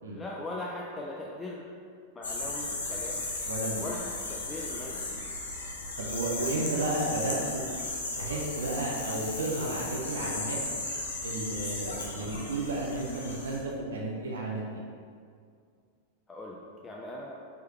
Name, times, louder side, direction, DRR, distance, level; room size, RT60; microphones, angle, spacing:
voice 1, 0.0-1.6 2.1-3.2 3.8-5.3 16.3-17.3, left 1 dB, 15° left, -3 dB, 0.4 m, -40 dB
sound 1, 2.2-13.6, left 2 dB, 70° left, 0.7 m, -36 dB
voice 2, 3.4-3.8 6.0-7.6 8.2-10.6 11.2-14.8, right 2 dB, 65° right, -3 dB, 0.6 m, -33 dB
4.5 x 3.4 x 3.0 m, 2.2 s
figure-of-eight pair, 90°, 0 cm